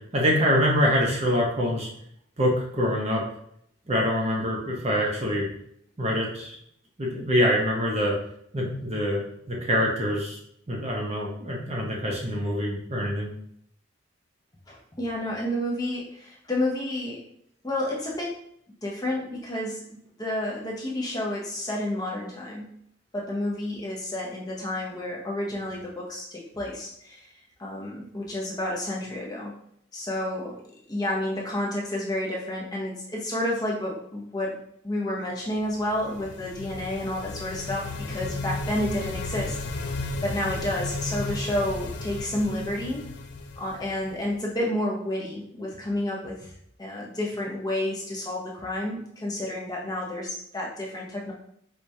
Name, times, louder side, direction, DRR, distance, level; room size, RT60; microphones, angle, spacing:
voice 1, 0.0-1.9 2.4-3.2 3.9-5.5 6.0-6.6 7.0-8.1 8.5-10.4 10.7-13.3, equal, 30° right, -1 dB, 0.6 m, -25 dB
voice 2, 14.7-17.2 17.6-18.3 18.8-19.8 20.2-22.6 23.1-27.3 27.6-29.5 29.9-30.5 30.9-34.6 34.8-43.1 43.6-46.5 46.8-51.3, left 1 dB, 20° left, -3 dB, 0.6 m, -30 dB
sound 1, 35.6-44.4, left 3 dB, 60° left, 0.4 m, -34 dB
4.6 x 2.2 x 2.7 m, 0.70 s
head